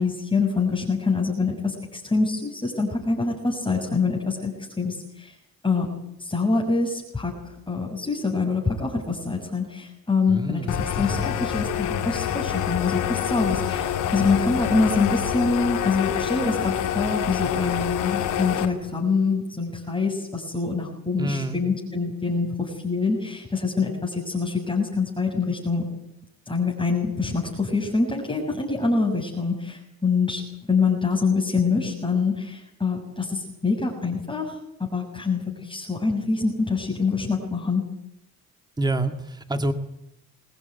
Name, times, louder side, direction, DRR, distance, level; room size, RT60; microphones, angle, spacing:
voice 1, 0.0-5.3 5.6-5.9 6.2-7.3 7.7-10.6 11.0-25.8 26.5-30.4 30.7-34.6 34.9-37.8, left 4 dB, 15° left, -2 dB, 6.7 m, -25 dB
voice 2, 10.3-11.3 21.2-21.6 38.8-39.7, right 2 dB, 15° right, 7 dB, 2.1 m, -27 dB
sound 1, 10.7-18.7, left 9 dB, 90° left, 2.6 m, -26 dB
23.0 x 19.0 x 9.3 m, 0.79 s
cardioid pair, 90°, 30 cm